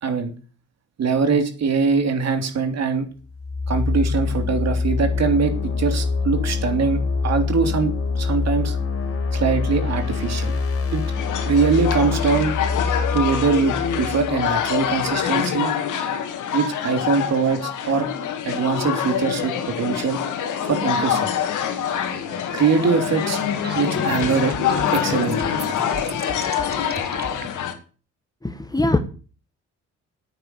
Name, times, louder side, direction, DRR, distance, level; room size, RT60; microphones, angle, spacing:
voice 1, 0.0-0.3 1.0-3.1 3.7-8.8 9.3-10.6 10.9-11.0 11.4-12.6 13.1-15.7 16.5-18.1 18.4-20.2 20.6-21.3 22.5-23.4 23.7-24.5 24.9-25.5, right 5 dB, 60° right, 3.2 m, -22 dB
sound 1, 3.3-15.1, left 4 dB, 50° left, 3.8 m, -25 dB
sound 2, 11.1-27.7, left 8 dB, 80° left, 2.3 m, -25 dB
sound 3, 23.1-27.5, right 4 dB, 35° right, 1.7 m, -37 dB
voice 2, 28.4-29.0, left 2 dB, 10° left, 1.6 m, -21 dB
10.5 x 9.1 x 8.4 m
cardioid pair, 90°, 30 cm